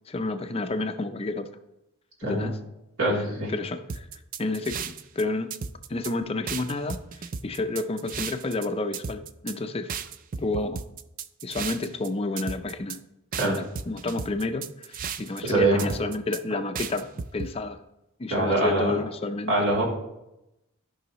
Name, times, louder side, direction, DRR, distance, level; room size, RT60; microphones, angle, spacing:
voice 1, 0.1-1.5 2.2-2.6 3.1-4.1 4.4-5.5 5.9-10.0 10.4-10.8 11.4-13.0 13.4-17.8 18.2-19.5, left 2 dB, 25° left, 8 dB, 0.4 m, -30 dB
voice 2, 3.0-3.5 13.3-13.5 15.4-15.8 18.3-18.9 19.5-19.8, right 2 dB, 70° right, -4 dB, 3.2 m, -23 dB
sound 1, 3.9-5.2 5.5-6.1 6.5-8.7 8.9-9.6 9.9-12.1 12.4-13.0 13.3-15.5 15.8-16.4 16.8-17.5, right 6 dB, 40° right, 0.4 m, -34 dB
13.5 x 5.5 x 3.1 m, 0.88 s
head